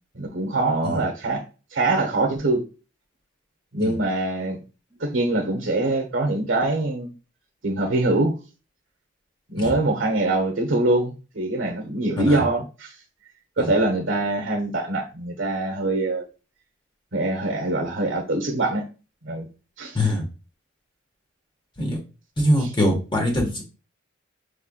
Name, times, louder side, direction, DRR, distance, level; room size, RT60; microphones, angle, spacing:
voice 1, 0.1-1.4 1.7-2.6 3.7-4.6 5.0-7.1 7.6-8.4 9.5-12.9 13.6-16.2 17.1-18.8 19.2-19.5 19.8-20.0 22.6-22.7, right 2 dB, 75° right, 0.9 m, -23 dB
voice 2, 22.4-23.6, left 1 dB, 25° left, 1.4 m, -23 dB
6.5 x 3.3 x 2.3 m
head